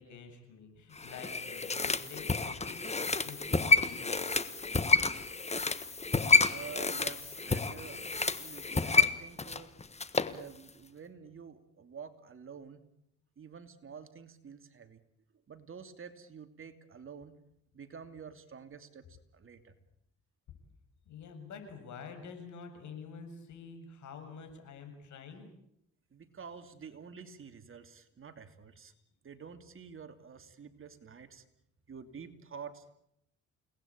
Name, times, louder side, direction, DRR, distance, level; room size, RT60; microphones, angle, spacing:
voice 1, 0.0-4.2 21.1-25.4, left 5 dB, 75° left, 6 dB, 7.2 m, -48 dB
sound 1, 1.0-10.4 10.7-10.8, left 3 dB, 20° left, 1.5 m, -29 dB
voice 2, 6.5-9.7 10.3-12.8 13.4-15.0 15.5-17.4 17.7-19.7 26.1-28.9 29.2-31.4 31.9-32.9, right 6 dB, 45° right, 8 dB, 2.8 m, -49 dB
29.5 x 19.0 x 8.8 m, 0.79 s
cardioid pair, 90°, 30 cm